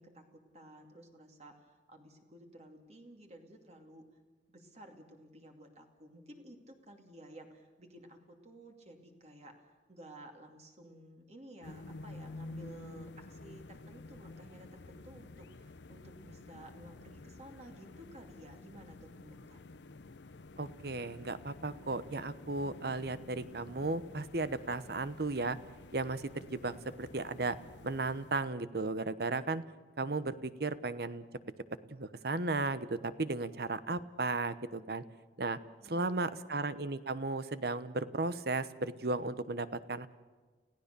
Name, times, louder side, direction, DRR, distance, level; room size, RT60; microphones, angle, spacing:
voice 1, 0.0-4.0 4.5-19.9 35.8-36.8, right 1 dB, 40° right, 3 dB, 2.6 m, -54 dB
sound 1, 11.6-28.6, left 2 dB, 90° left, 0.7 m, -51 dB
voice 2, 20.6-25.6 25.9-27.6 27.8-29.6 30.0-31.2 31.8-35.0 35.4-35.6 35.8-40.1, right 3 dB, 60° right, 14 dB, 1.0 m, -35 dB
29.5 x 16.5 x 6.9 m, 1.4 s
head